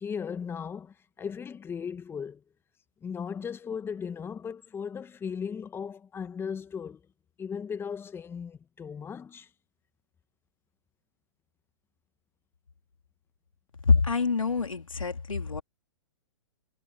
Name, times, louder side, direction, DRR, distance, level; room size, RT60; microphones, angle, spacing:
voice 1, 0.0-2.4 3.0-7.0 7.4-9.5, left 6 dB, 15° left, 1.9 m, -37 dB
voice 2, 13.8-15.6, left 4 dB, 85° left, 3.2 m, -25 dB
figure-of-eight pair, 120°, 16 cm